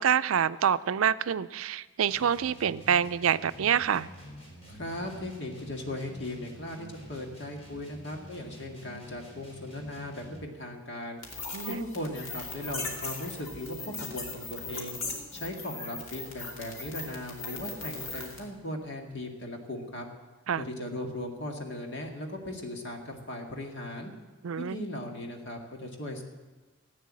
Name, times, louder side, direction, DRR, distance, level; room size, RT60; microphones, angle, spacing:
voice 1, 0.0-4.1 11.5-11.8 20.5-20.6 24.4-24.8, right 8 dB, 85° right, 14 dB, 0.4 m, -26 dB
sound 1, 2.1-10.5, equal, 30° left, 3.8 m, -48 dB
voice 2, 4.7-11.2 11.7-15.0 15.3-20.1 20.6-24.1 24.6-26.2, left 1 dB, 55° left, 2 dB, 2.0 m, -38 dB
sound 2, 11.2-18.5, left 3 dB, 90° left, 2.6 m, -39 dB
15.0 x 9.1 x 7.5 m, 1.3 s
head